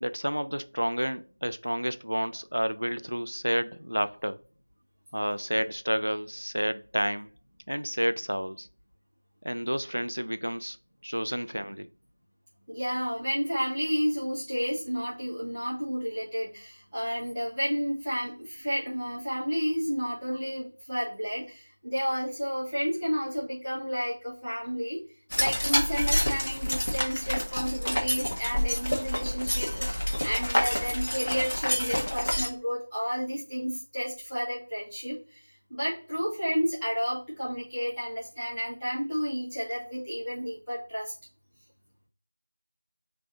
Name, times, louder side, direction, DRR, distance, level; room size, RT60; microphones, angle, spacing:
voice 1, 0.0-4.4 5.1-7.3 7.7-8.7 9.4-10.8 11.0-11.9, equal, 80° right, 0.4 m, -30 dB
voice 2, 12.7-25.0 25.4-35.4 35.7-41.1, equal, ahead, 0.8 m, -31 dB
sound 1, 25.3-32.5, equal, 40° left, 1.1 m, -28 dB
3.8 x 2.8 x 3.8 m
figure-of-eight pair, 175°, 0 cm